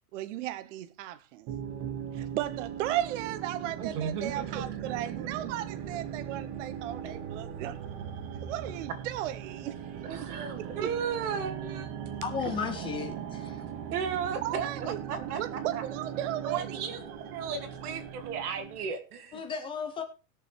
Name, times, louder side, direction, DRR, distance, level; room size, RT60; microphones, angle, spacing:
voice 1, 0.0-1.5 2.1-7.8 8.4-10.3 10.8-10.9 12.4-12.5 14.4-16.8, right 13 dB, 55° right, 0.7 m, -36 dB
sound 1, 1.5-18.9, right 8 dB, 30° right, 1.2 m, -39 dB
voice 2, 3.8-5.4 10.0-11.9 12.4-12.6 13.9-15.4 15.7-15.8 16.4-17.1 17.3-19.4, right 7 dB, 90° right, 2.5 m, -35 dB
voice 3, 12.2-13.6 19.3-20.0, left 6 dB, 10° left, 0.5 m, -34 dB
20.5 x 6.9 x 3.4 m
supercardioid pair, 170°, 44 cm